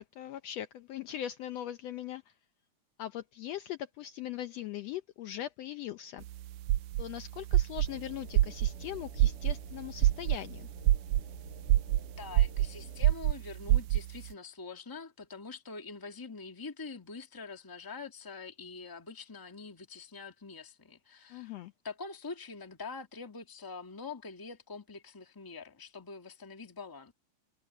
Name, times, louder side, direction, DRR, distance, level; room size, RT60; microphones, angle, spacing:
voice 1, 0.0-2.3 3.0-6.2 7.0-10.7 21.3-21.7, left 12 dB, 75° left, 1.7 m, -40 dB
sound 1, 6.2-14.3, right 14 dB, 90° right, 2.1 m, -27 dB
sound 2, 7.9-13.1, left 3 dB, 35° left, 4.5 m, -52 dB
voice 2, 12.2-21.6 21.8-27.1, left 4 dB, 10° left, 1.3 m, -45 dB
omnidirectional pair, 3.4 m